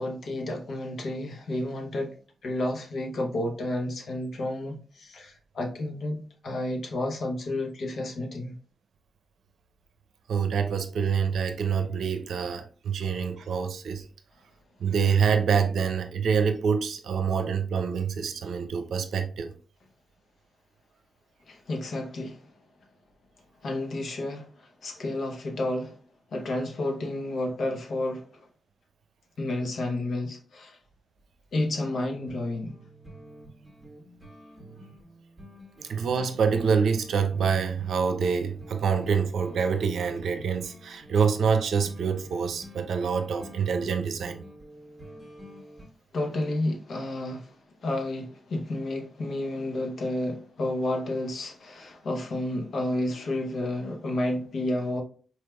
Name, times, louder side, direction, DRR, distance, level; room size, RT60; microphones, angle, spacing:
voice 1, 0.0-2.1 2.4-8.5 21.5-22.4 23.6-24.5 24.8-25.9 26.3-28.2 29.4-30.8 31.5-32.7 46.1-47.5 47.8-55.0, left 1 dB, 70° left, 1.0 m, -31 dB
voice 2, 10.3-14.0 14.8-19.5 35.9-44.4, right 6 dB, 85° right, 0.6 m, -26 dB
sound 1, 32.1-45.9, equal, 5° left, 1.6 m, -48 dB
4.5 x 3.3 x 2.3 m
cardioid pair, 95°, 0 cm